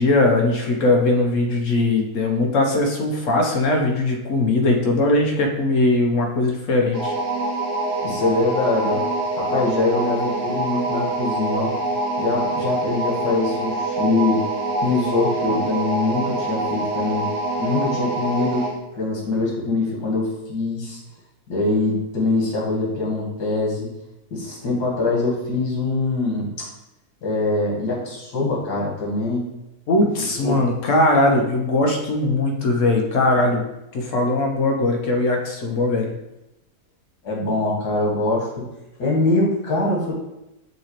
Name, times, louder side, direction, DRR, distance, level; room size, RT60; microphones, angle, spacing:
voice 1, 0.0-7.1 29.9-33.6 33.9-36.1, left 2 dB, 60° left, 2 dB, 0.9 m, -20 dB
sound 1, 6.9-18.8, right 2 dB, 55° right, 1.2 m, -25 dB
voice 2, 8.0-9.1 9.3-11.7 12.2-14.4 14.8-17.3 17.6-18.7 18.9-21.0 21.5-23.9 24.3-26.6 27.2-29.4 30.4-30.6 37.2-38.5 39.0-40.1, left 2 dB, 85° left, -3 dB, 1.9 m, -23 dB
5.8 x 2.9 x 2.9 m, 0.91 s
omnidirectional pair, 1.7 m